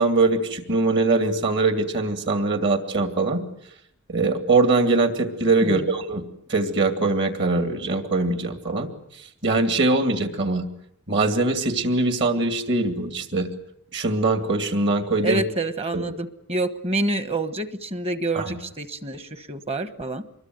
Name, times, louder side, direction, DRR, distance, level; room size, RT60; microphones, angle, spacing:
voice 1, 0.0-3.4 4.1-6.2 6.5-10.7 11.1-13.5 13.9-15.4 15.9-16.0 18.3-18.6, right 3 dB, 50° right, 7 dB, 2.5 m, -22 dB
voice 2, 15.2-20.2, right 2 dB, 25° right, 12 dB, 1.3 m, -27 dB
25.5 x 22.0 x 9.4 m, 0.74 s
head